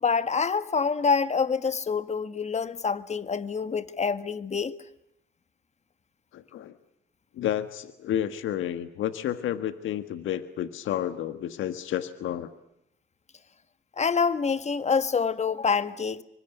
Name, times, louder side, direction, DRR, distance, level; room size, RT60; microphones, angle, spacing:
voice 1, 0.0-4.8 14.0-16.2, left 5 dB, 35° left, 1.7 m, -26 dB
voice 2, 6.3-6.7 7.3-12.5, left 11 dB, 80° left, 1.6 m, -31 dB
27.0 x 24.5 x 8.0 m
cardioid pair, 90°, 20 cm